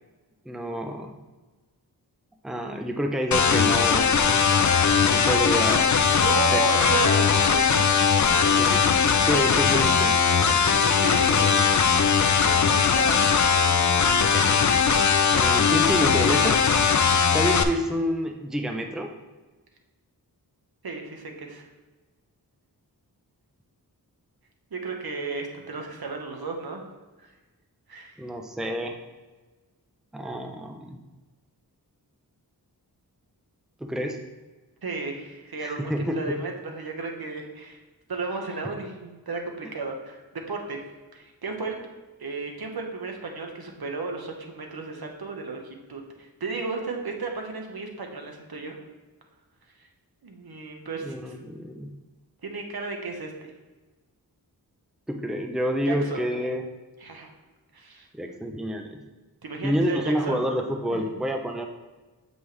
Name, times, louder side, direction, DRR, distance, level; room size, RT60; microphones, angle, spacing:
voice 1, 0.5-1.1 2.4-4.4 5.0-5.9 6.5-6.8 8.4-9.0 9.3-10.2 10.5-10.6 14.3-14.6 15.3-16.6 17.3-19.1 28.2-29.0 30.1-31.0 33.8-34.2 35.6-36.2 51.0-51.9 55.1-56.6 58.1-59.0 59.6-61.7, equal, ahead, 3 dB, 0.7 m, -28 dB
sound 1, 3.3-17.6, left 6 dB, 50° left, 0.6 m, -20 dB
voice 2, 6.2-7.8 8.3-8.9 10.6-11.6 12.1-14.7 20.8-21.7 24.7-26.8 27.2-27.3 27.9-28.3 34.8-37.8 38.1-40.2 40.5-40.8 41.1-41.8 42.2-48.8 49.8-49.9 50.2-51.3 52.4-53.5 55.9-56.2 57.0-57.3 57.7-58.4 59.4-60.4 60.9-61.1, right 3 dB, 70° right, 2 dB, 1.3 m, -34 dB
7.7 x 5.4 x 3.3 m, 1.2 s
wide cardioid pair, 80°, 38 cm